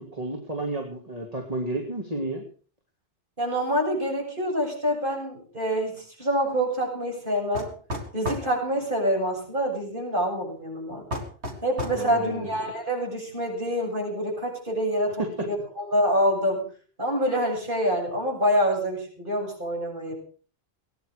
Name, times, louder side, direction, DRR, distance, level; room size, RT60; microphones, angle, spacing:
voice 1, 0.0-2.4 11.9-12.5 15.2-15.3, right 2 dB, 35° right, 2 dB, 2.9 m, -31 dB
voice 2, 3.4-7.7 8.1-11.0 11.6-16.6 17.0-20.1, equal, 50° right, 0 dB, 8.0 m, -26 dB
sound 1, 7.6-8.5 11.1-12.0, left 1 dB, 80° right, 3.8 m, -32 dB
20.5 x 10.5 x 6.7 m, 0.42 s
omnidirectional pair, 1.1 m